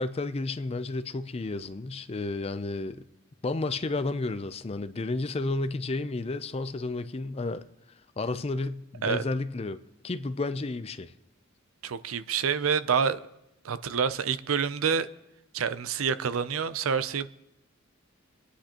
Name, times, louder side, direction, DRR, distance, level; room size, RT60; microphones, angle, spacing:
voice 1, 0.0-3.0 3.4-7.6 8.2-9.8 10.0-11.1, left 2 dB, 30° left, 0.4 m, -31 dB
voice 2, 11.8-13.2 13.6-15.1 15.5-17.3, right 6 dB, 80° right, 0.5 m, -27 dB
25.5 x 9.9 x 2.9 m
head